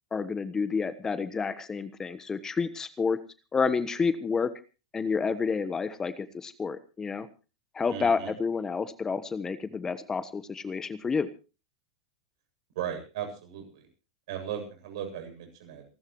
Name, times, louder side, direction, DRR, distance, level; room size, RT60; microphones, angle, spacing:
voice 1, 0.1-3.2 3.5-4.5 4.9-7.3 7.7-11.3, left 5 dB, 20° left, 14 dB, 1.2 m, -29 dB
voice 2, 7.9-8.3 12.8-13.9 14.3-15.9, right 9 dB, 65° right, 5 dB, 7.7 m, -37 dB
27.5 x 13.0 x 3.1 m, 0.34 s
hypercardioid pair, 105°, 3 cm